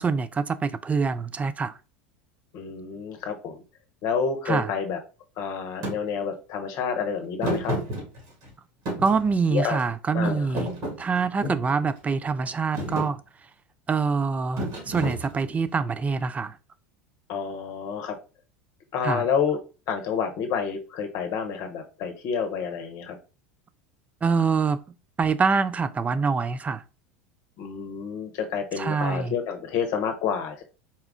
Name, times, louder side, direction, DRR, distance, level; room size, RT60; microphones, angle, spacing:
voice 1, 0.0-1.8 4.5-4.7 9.0-10.7 11.0-13.2 13.9-16.6 19.0-19.2 24.2-24.8 25.2-26.8 28.8-29.3, right 5 dB, 20° right, 0.3 m, -25 dB
voice 2, 2.5-3.6 4.0-5.0 5.4-7.7 9.5-9.8 10.1-10.5 17.3-18.2 18.9-19.6 19.9-23.2 27.6-30.6, left 7 dB, 55° left, 0.8 m, -29 dB
Thump thud, 5.8-6.0 7.4-8.5 8.8-9.8 10.2-11.7 12.3-12.5 12.7-13.1 14.6-15.6, equal, 55° right, 2.0 m, -31 dB
4.3 x 2.4 x 3.5 m
hypercardioid pair, 90°, 7 cm